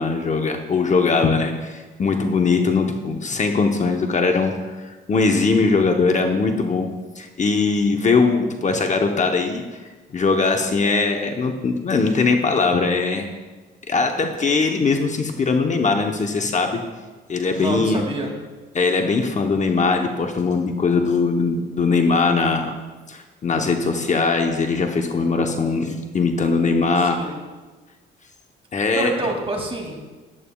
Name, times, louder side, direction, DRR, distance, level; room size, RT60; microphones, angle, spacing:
voice 1, 0.0-6.9 7.2-9.6 10.1-13.3 13.9-16.8 17.3-18.0 18.7-22.7 23.1-27.2 28.7-29.1, left 4 dB, 35° left, 4 dB, 0.9 m, -20 dB
voice 2, 17.6-18.3 27.2-27.4 28.9-30.0, right 2 dB, 30° right, 1 dB, 2.4 m, -27 dB
14.0 x 11.0 x 2.3 m, 1.3 s
cardioid pair, 90°, 20 cm